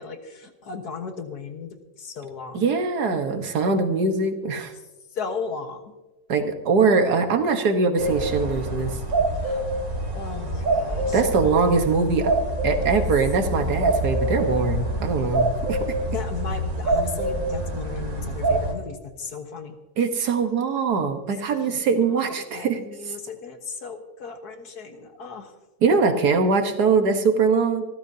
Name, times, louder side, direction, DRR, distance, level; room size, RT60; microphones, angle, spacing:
voice 1, 0.0-2.7 5.1-5.9 9.3-9.7 10.1-11.2 12.9-13.1 13.4-14.0 16.1-19.8 21.6-22.2 22.5-25.5, left 5 dB, 80° left, 5 dB, 2.0 m, -36 dB
voice 2, 2.5-4.7 6.3-9.0 11.1-12.3 12.6-15.8 20.0-22.8 23.1-23.2 25.8-27.8, right 4 dB, 85° right, 6 dB, 1.9 m, -22 dB
sound 1, 8.0-18.7, right 1 dB, 65° right, 2.8 m, -26 dB
25.5 x 14.0 x 2.8 m, 1.1 s
omnidirectional pair, 1.6 m